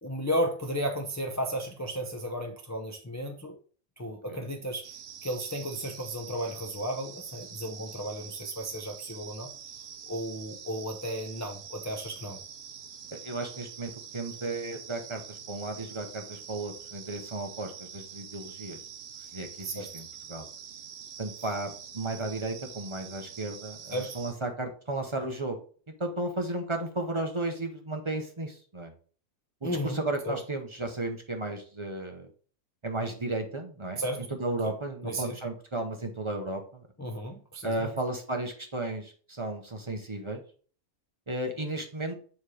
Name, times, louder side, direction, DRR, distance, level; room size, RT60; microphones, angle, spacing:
voice 1, 0.0-3.6 4.0-4.9 5.2-9.5 10.0-12.4 19.6-19.9 23.9-24.2 29.6-30.0 30.2-30.4 34.0-34.3 34.6-34.7 35.0-35.4 37.0-37.9, equal, 20° left, 1 dB, 0.4 m, -34 dB
sound 1, 4.8-24.3, right 7 dB, 55° right, 0.8 m, -45 dB
voice 2, 13.1-18.8 19.2-20.5 21.2-25.6 26.0-28.9 29.6-32.3 32.8-34.0 34.4-36.9 37.6-40.4 41.3-42.1, right 2 dB, 30° right, 4 dB, 0.7 m, -34 dB
7.2 x 3.1 x 4.8 m, 0.42 s
omnidirectional pair, 1.5 m